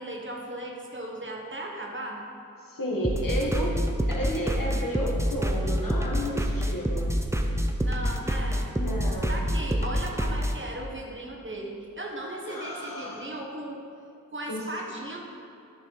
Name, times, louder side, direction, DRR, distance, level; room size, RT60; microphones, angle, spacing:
voice 1, 0.0-2.2 7.8-8.7 9.3-13.8 14.3-15.2, right 1 dB, 35° right, -1 dB, 1.4 m, -37 dB
voice 2, 2.6-3.7 4.1-7.1 8.7-9.4 12.5-13.2 14.5-14.6, equal, 80° left, -3 dB, 1.5 m, -32 dB
sound 1, 3.0-10.5, equal, 10° right, 0.6 m, -27 dB
12.0 x 4.3 x 4.7 m, 2.6 s
wide cardioid pair, 45°, 33 cm